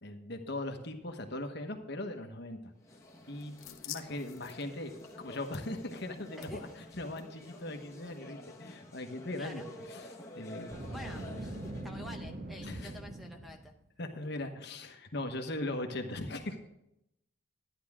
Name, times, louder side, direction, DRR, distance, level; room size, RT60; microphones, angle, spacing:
voice 1, 0.0-2.6 3.3-4.9 5.2-10.7 12.6-13.0 14.0-16.7, left 1 dB, 55° left, 5 dB, 1.2 m, -39 dB
sound 1, 2.8-12.0, left 1 dB, 15° left, 1.2 m, -50 dB
sound 2, 3.0-8.2, left 13 dB, 80° left, 0.8 m, -51 dB
Boom, 10.6-13.7, right 1 dB, 45° right, 1.5 m, -42 dB
voice 2, 10.9-11.6 11.8-13.7, left 1 dB, ahead, 4 dB, 0.7 m, -48 dB
12.0 x 10.5 x 3.7 m, 0.83 s
head